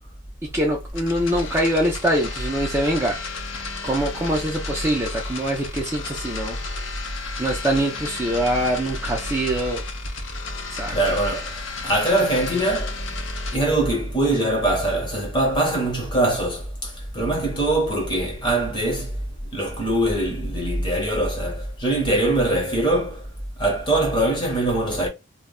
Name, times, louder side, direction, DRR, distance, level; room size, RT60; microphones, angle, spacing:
voice 1, 0.5-3.2 3.8-6.8 7.4-9.8 10.7-10.9, right 1 dB, 10° right, 0.4 m, -24 dB
sound 1, 0.9-13.6, left 3 dB, 65° left, 0.6 m, -33 dB
voice 2, 10.9-13.0 13.5-19.2 19.5-23.3 23.6-25.1, right 1 dB, 20° left, 0.9 m, -22 dB
2.2 x 2.1 x 3.6 m
head